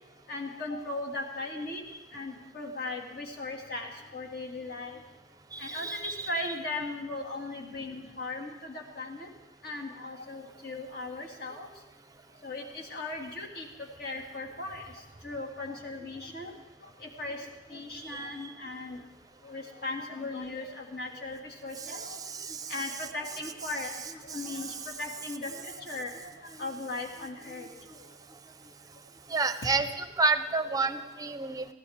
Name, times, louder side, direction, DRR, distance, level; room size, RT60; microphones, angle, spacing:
voice 1, 0.3-1.8 2.1-5.0 5.6-9.3 9.6-11.7 12.4-13.7 14.0-14.8 15.2-16.5 16.8-17.4 17.7-19.0 19.4-22.2 22.7-27.7, left 2 dB, 50° left, 1 dB, 2.2 m, -38 dB
voice 2, 5.5-6.3 18.0-18.5 21.8-22.7 24.3-24.7 29.3-31.7, right 3 dB, 20° right, 10 dB, 0.7 m, -31 dB
21.5 x 15.5 x 3.6 m, 1.0 s
head